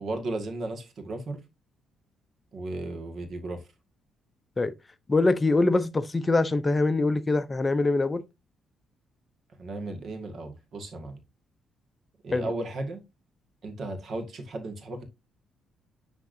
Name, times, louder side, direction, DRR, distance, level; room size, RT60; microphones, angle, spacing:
voice 1, 0.0-1.4 2.5-3.6 9.6-11.2 12.2-13.0 13.6-15.0, right 2 dB, 55° right, 1.7 m, -35 dB
voice 2, 5.1-8.2 12.3-12.5, left 2 dB, 25° left, 0.6 m, -23 dB
10.0 x 3.6 x 2.6 m
cardioid pair, 90°, 0 cm